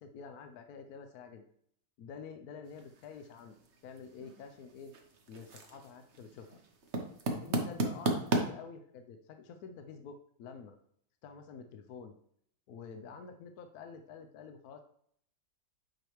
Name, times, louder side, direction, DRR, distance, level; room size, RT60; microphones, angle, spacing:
voice 1, 0.0-1.5 2.0-3.6 3.8-4.9 5.3-6.6 7.3-10.8 11.2-12.1 12.7-14.8, left 6 dB, 70° left, 7 dB, 1.0 m, -48 dB
sound 1, 2.6-8.4, right 2 dB, 45° right, 1.0 m, -37 dB
9.1 x 4.8 x 3.1 m, 0.66 s
omnidirectional pair, 2.0 m